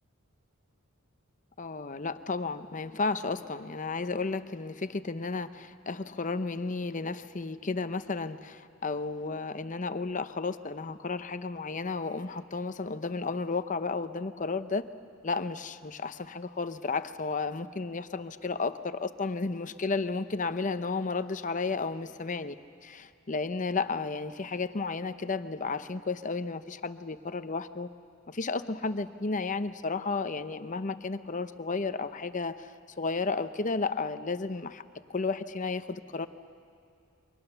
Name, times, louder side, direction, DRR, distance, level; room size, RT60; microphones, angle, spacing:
voice 1, 1.6-14.8 15.2-22.6 22.8-27.9 28.3-32.7 33.0-34.8 35.1-36.3, left 4 dB, 35° left, 11 dB, 0.7 m, -33 dB
29.5 x 23.5 x 6.9 m, 2.5 s
head